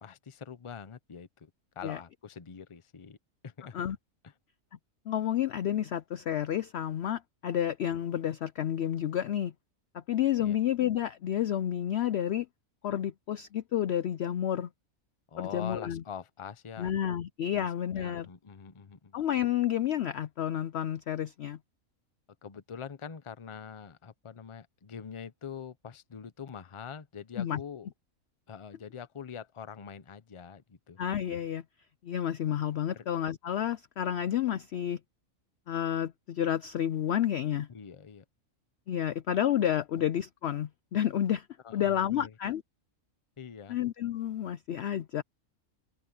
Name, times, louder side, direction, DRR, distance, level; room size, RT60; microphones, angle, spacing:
voice 1, 0.0-1.5 1.8-3.2 3.4-3.8 4.2-4.3 10.4-10.6 15.3-16.9 17.5-17.7 17.9-19.2 22.4-27.9 28.5-31.0 32.9-33.1 37.7-38.2 41.6-42.3 43.4-43.8, left 7 dB, 30° left, 0.7 m, -44 dB
voice 2, 5.1-9.5 9.9-12.5 12.8-14.7 15.4-16.0 16.8-18.3 19.1-21.6 27.4-27.6 31.0-31.6 32.0-35.0 35.7-37.7 38.9-41.5 41.7-42.6 43.7-45.2, left 10 dB, 65° left, 0.7 m, -30 dB
open air
omnidirectional pair, 1.5 m